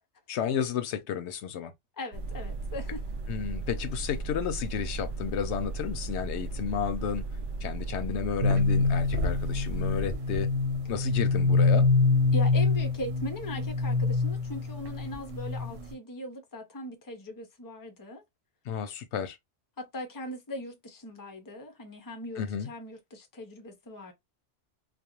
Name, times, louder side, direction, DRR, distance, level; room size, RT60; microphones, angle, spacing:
voice 1, 0.3-1.7 3.3-7.3 7.6-10.5 10.9-11.9 18.7-19.4 22.4-22.7, left 8 dB, 70° left, 0.8 m, -32 dB
voice 2, 2.0-3.0 12.3-18.2 19.8-24.1, left 1 dB, 30° left, 0.4 m, -39 dB
sound 1, 2.1-10.1, right 3 dB, 60° right, 0.5 m, -36 dB
sound 2, 8.4-15.9, left 3 dB, 85° right, 1.1 m, -25 dB
2.4 x 2.2 x 2.9 m
omnidirectional pair, 1.3 m